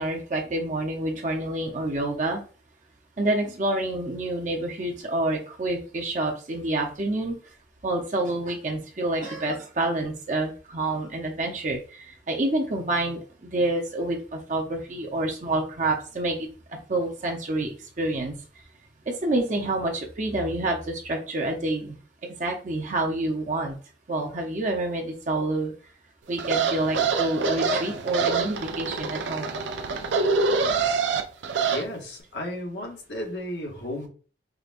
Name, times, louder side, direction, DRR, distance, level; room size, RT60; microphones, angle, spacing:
voice 1, 0.0-2.4 3.2-7.4 7.8-16.5 16.9-18.4 19.1-23.8 24.1-25.7 26.3-29.5, right 2 dB, 45° right, 1 dB, 0.7 m, -28 dB
sound 1, 26.4-31.8, right 4 dB, 90° right, 0.4 m, -25 dB
voice 2, 31.7-34.1, left 1 dB, 75° left, 0 dB, 1.1 m, -33 dB
4.9 x 2.2 x 2.5 m, 0.38 s
head